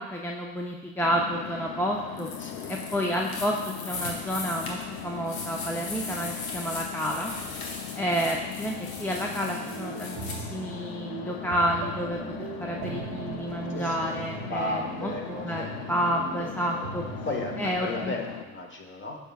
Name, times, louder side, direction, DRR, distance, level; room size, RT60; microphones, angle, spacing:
voice 1, 0.0-2.3 2.7-7.3 8.0-12.2 12.6-17.0 17.6-18.1, equal, 5° left, -1 dB, 0.6 m, -30 dB
sound 1, 1.0-18.4, left 10 dB, 65° left, 0.6 m, -39 dB
sound 2, 2.2-10.4, left 3 dB, 85° left, 1.1 m, -39 dB
voice 2, 2.4-2.7 13.7-15.7 16.4-16.5 17.2-19.2, left 2 dB, 30° left, 1 dB, 1.4 m, -35 dB
sound 3, 9.4-17.8, right 6 dB, 65° right, 0.7 m, -40 dB
8.8 x 5.8 x 2.4 m, 1.2 s
hypercardioid pair, 60°, 40 cm